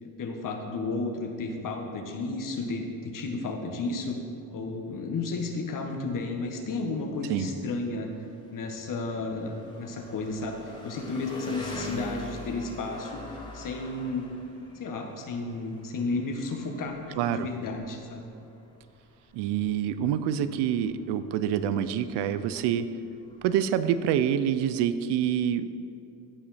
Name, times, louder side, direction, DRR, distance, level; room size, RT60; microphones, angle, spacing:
voice 1, 0.0-4.2 4.5-8.1 8.5-14.3 14.7-18.2, left 3 dB, 45° left, 3 dB, 1.5 m, -33 dB
Engine, 4.6-24.1, left 1 dB, 10° left, 2.2 m, -45 dB
voice 2, 17.2-17.5 19.3-22.9 23.4-25.7, right 9 dB, 70° right, 13 dB, 0.7 m, -26 dB
16.0 x 5.6 x 4.3 m, 2.7 s
supercardioid pair, 75°, 43 cm